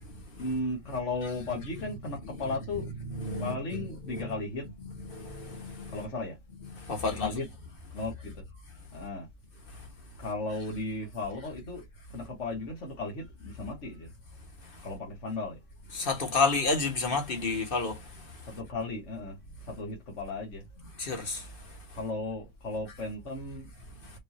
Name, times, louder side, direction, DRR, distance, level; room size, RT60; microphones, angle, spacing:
voice 1, 0.4-2.9 3.4-4.7 5.9-6.4 7.0-7.5 7.9-8.6 8.9-9.3 9.7-9.8 10.2-11.8 12.1-14.1 14.8-15.6 18.5-19.4 19.6-20.6 21.9-23.7, left 2 dB, 60° left, 2.0 m, -35 dB
voice 2, 2.2-4.3 4.8-5.9 6.6-7.3 15.9-18.0 21.0-21.4, left 3 dB, 40° left, 1.6 m, -31 dB
5.4 x 2.7 x 2.9 m
omnidirectional pair, 1.4 m